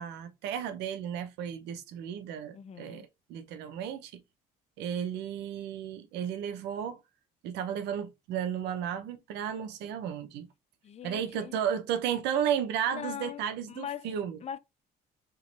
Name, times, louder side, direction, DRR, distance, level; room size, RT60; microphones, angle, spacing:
voice 1, 0.0-4.2 4.8-7.0 7.4-10.5 11.0-14.4, right 9 dB, 85° right, 0.9 m, -33 dB
voice 2, 2.5-3.1 10.8-11.6 12.9-13.4 13.7-14.1 14.4-14.6, left 9 dB, 40° left, 0.5 m, -40 dB
3.8 x 3.0 x 4.0 m
cardioid pair, 110°, 17 cm